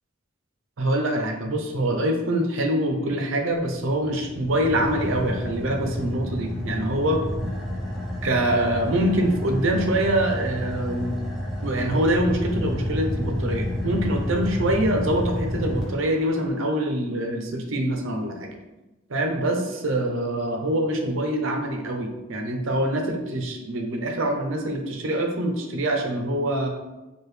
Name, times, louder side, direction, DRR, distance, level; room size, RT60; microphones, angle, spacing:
voice 1, 0.8-7.2 8.2-11.2 11.6-18.5 19.1-26.7, right 1 dB, 80° right, 3 dB, 0.6 m, -25 dB
Car / Idling, 3.5-16.5, left 1 dB, ahead, 0.8 m, -30 dB
4.7 x 2.4 x 3.2 m, 1.1 s
head